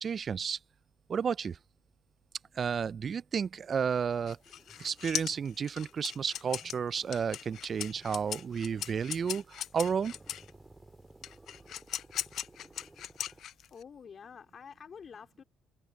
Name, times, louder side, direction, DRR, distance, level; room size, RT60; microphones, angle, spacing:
voice 1, 0.0-0.6 1.1-1.6 2.6-4.4 4.8-10.1, right 6 dB, 45° right, 0.4 m, -32 dB
sound 1, 4.2-13.4, right 2 dB, 15° right, 1.9 m, -58 dB
sound 2, 4.3-10.5 11.2-13.8, left 11 dB, 65° left, 0.6 m, -39 dB
voice 2, 13.2-15.4, left 6 dB, 45° left, 3.3 m, -49 dB
supercardioid pair, 80°, 0 cm